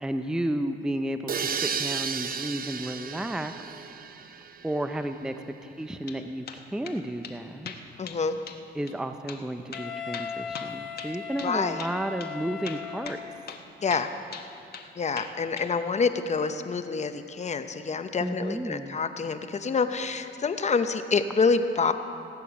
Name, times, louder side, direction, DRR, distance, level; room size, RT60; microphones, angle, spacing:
voice 1, 0.0-3.5 4.6-7.7 8.7-13.2 18.2-19.0, right 1 dB, 5° right, 8 dB, 0.5 m, -32 dB
sound 1, 1.3-5.0, right 6 dB, 45° right, 0.7 m, -33 dB
sound 2, 5.8-6.2 6.5-7.0 7.2-7.4 7.6-8.2 8.5-8.6 8.9-9.0 9.3-9.4 9.7-11.5 11.8-11.9 12.2-12.3 12.6-13.6 13.9-14.9 15.2-15.7, left 6 dB, 50° left, 1.2 m, -41 dB
voice 2, 8.0-8.4 11.4-11.8 13.8-14.1 15.0-21.9, left 5 dB, 35° left, 9 dB, 0.8 m, -27 dB
Wind instrument woodwind instrument, 9.7-13.6, left 7 dB, 70° left, 0.9 m, -38 dB
18.5 x 8.3 x 7.0 m, 2.7 s
cardioid pair, 90°, 20 cm